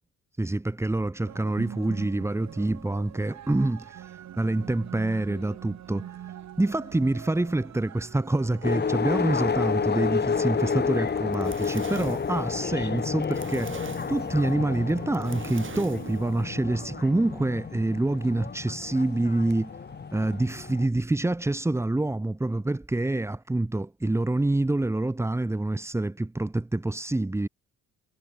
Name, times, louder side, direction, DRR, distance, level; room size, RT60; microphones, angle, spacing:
voice 1, 0.4-6.1 6.6-19.7 20.1-27.5, right 2 dB, 10° right, 1.0 m, -27 dB
sound 1, 1.3-20.8, right 11 dB, 65° right, 2.5 m, -45 dB
sound 2, 8.6-20.9, left 6 dB, 35° left, 1.8 m, -30 dB
Fire, 10.9-16.4, right 6 dB, 40° right, 7.0 m, -44 dB
cardioid pair, 90°, 30 cm